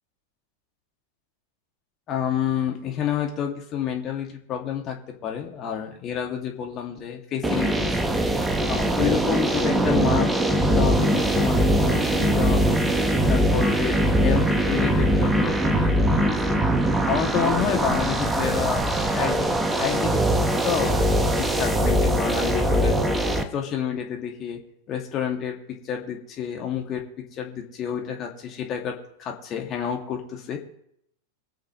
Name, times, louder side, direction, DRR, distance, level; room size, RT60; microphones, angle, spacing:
voice 1, 2.1-5.0 5.2-7.9 8.7-12.8 13.3-16.7 17.1-19.5 19.7-22.9 23.5-24.6 24.9-27.0 27.3-30.6, left 9 dB, 30° left, 1 dB, 2.2 m, -29 dB
sound 1, 7.4-23.4, right 1 dB, 10° right, 1.2 m, -22 dB
23.5 x 8.3 x 3.1 m, 0.72 s
figure-of-eight pair, 90°, 0 cm